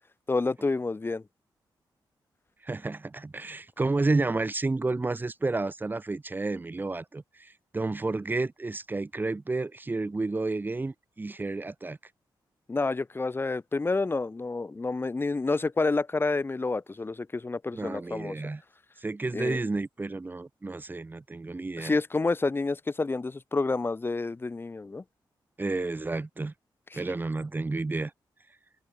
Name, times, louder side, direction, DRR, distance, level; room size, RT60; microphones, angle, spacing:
voice 1, 0.3-1.2 12.7-18.3 19.3-19.6 21.8-25.0 26.9-27.0, left 3 dB, 25° left, 2.7 m, -29 dB
voice 2, 2.6-12.0 17.7-18.6 19.0-21.9 25.6-26.5 26.9-28.1, right 3 dB, 25° right, 2.6 m, -31 dB
wide cardioid pair, 130°, 8 cm